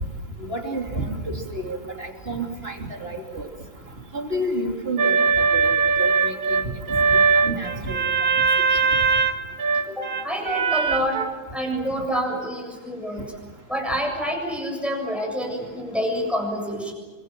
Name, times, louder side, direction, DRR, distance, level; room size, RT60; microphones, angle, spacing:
voice 1, 0.4-3.5 4.1-8.4, right 1 dB, 30° right, 2 dB, 3.2 m, -30 dB
sound 1, 5.0-11.3, right 5 dB, 50° right, 1.6 m, -21 dB
voice 2, 10.0-11.2 11.5-13.3 13.7-16.9, equal, ahead, 1 dB, 7.2 m, -27 dB
28.0 x 25.5 x 7.6 m, 1.3 s
omnidirectional pair, 2.2 m